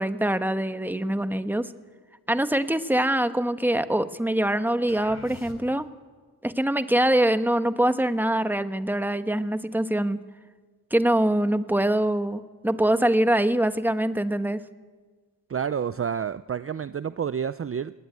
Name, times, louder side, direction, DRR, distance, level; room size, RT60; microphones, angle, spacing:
voice 1, 0.0-1.7 2.3-5.9 6.4-10.2 10.9-14.6, right 1 dB, 5° right, 10 dB, 1.3 m, -24 dB
sound 1, 4.9-6.0, left 2 dB, 40° left, 3.6 m, -45 dB
voice 2, 15.5-17.9, right 7 dB, 35° right, 14 dB, 0.6 m, -29 dB
20.5 x 18.0 x 9.3 m, 1.4 s
cardioid pair, 65°, 40 cm